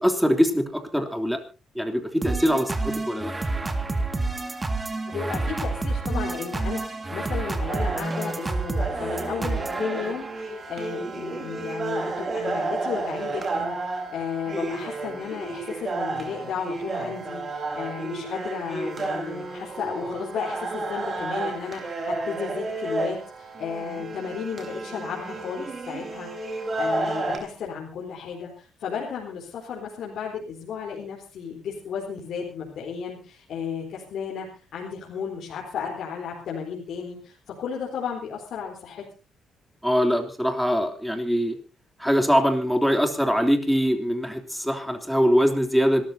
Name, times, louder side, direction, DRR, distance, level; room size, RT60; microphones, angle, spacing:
voice 1, 0.0-1.4 1.7-2.7 3.1-3.3 39.8-41.5 42.0-46.0, equal, ahead, 4 dB, 3.3 m, -22 dB
sound 1, 2.2-10.4, right 2 dB, 20° right, 2.1 m, -29 dB
voice 2, 5.1-39.0, left 6 dB, 70° left, -3 dB, 4.1 m, -34 dB
sound 2, 7.7-27.4, right 3 dB, 40° right, 4.4 m, -31 dB
26.0 x 13.5 x 2.8 m, 0.34 s
cardioid pair, 90°, 0 cm